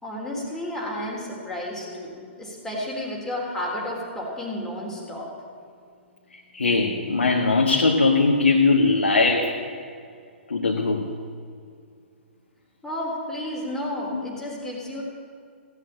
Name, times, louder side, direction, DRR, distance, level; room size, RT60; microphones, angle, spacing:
voice 1, 0.0-5.3 12.8-15.0, left 1 dB, 5° left, -3 dB, 3.7 m, -32 dB
voice 2, 6.3-9.6 10.5-11.1 14.1-14.2, left 3 dB, 80° left, 0 dB, 1.5 m, -20 dB
16.0 x 8.3 x 8.9 m, 2.3 s
figure-of-eight pair, 120°, 6 cm